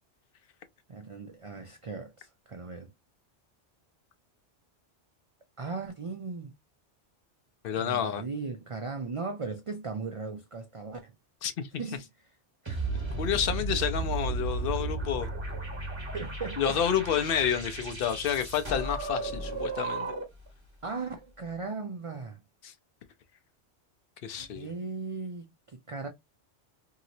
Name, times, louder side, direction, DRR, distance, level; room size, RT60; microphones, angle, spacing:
voice 1, 0.9-2.9 5.6-6.5 7.8-11.1 11.8-12.0 12.6-12.9 16.1-16.8 20.8-22.4 24.4-26.1, right 4 dB, 50° right, 0.4 m, -37 dB
voice 2, 7.6-8.2 11.4-11.7 13.2-15.3 16.6-20.1 22.6-22.7 24.2-24.7, left 8 dB, 60° left, 0.7 m, -29 dB
sound 1, 12.7-20.5, right 3 dB, 25° right, 1.1 m, -34 dB
2.9 x 2.8 x 2.6 m
omnidirectional pair, 1.2 m